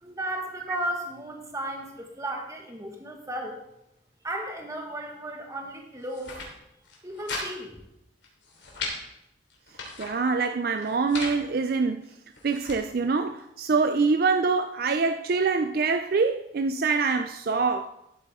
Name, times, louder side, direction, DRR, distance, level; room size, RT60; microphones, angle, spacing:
voice 1, 0.0-3.6 4.2-6.4 7.0-7.7, right 1 dB, 15° right, 1.6 m, -34 dB
sound 1, 6.0-6.5 6.8-7.5 7.8-7.9 8.2-9.0 9.5-10.1 10.8-11.4 12.0-12.8, left 3 dB, 75° left, 2.9 m, -37 dB
voice 2, 10.0-12.0 12.4-17.9, right 4 dB, 55° right, 0.4 m, -25 dB
13.5 x 8.2 x 3.7 m
head